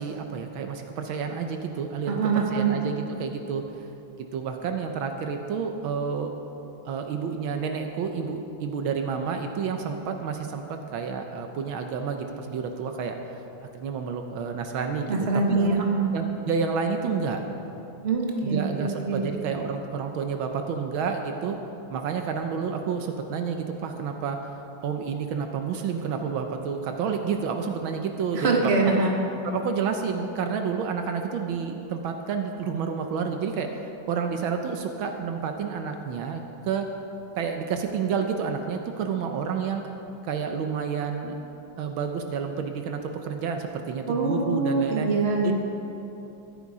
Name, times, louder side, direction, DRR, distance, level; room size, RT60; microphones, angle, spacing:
voice 1, 0.0-3.6 4.3-6.3 6.8-13.1 13.7-15.2 15.5-15.8 16.1-17.4 18.4-21.6 21.9-24.4 24.8-28.7 29.4-33.7 34.1-36.9 37.4-39.8 40.2-41.4 41.8-45.1 45.4-45.5, right 6 dB, 75° right, 5 dB, 1.6 m, -30 dB
voice 2, 2.1-2.7 15.1-16.1 18.0-19.3 28.3-29.1 44.1-45.5, right 3 dB, 35° right, 0 dB, 1.5 m, -24 dB
13.5 x 11.5 x 4.8 m, 3.0 s
omnidirectional pair, 2.2 m